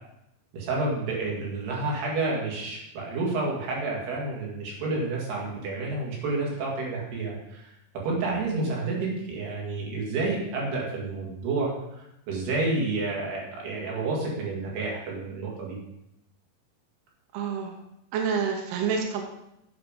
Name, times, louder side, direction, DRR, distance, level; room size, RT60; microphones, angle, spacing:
voice 1, 0.5-7.6 8.0-15.8, right 3 dB, 85° right, -3 dB, 4.2 m, -30 dB
voice 2, 17.3-17.8 18.1-19.2, right 6 dB, 70° right, 2 dB, 2.4 m, -28 dB
8.1 x 6.7 x 5.2 m, 0.83 s
omnidirectional pair, 4.5 m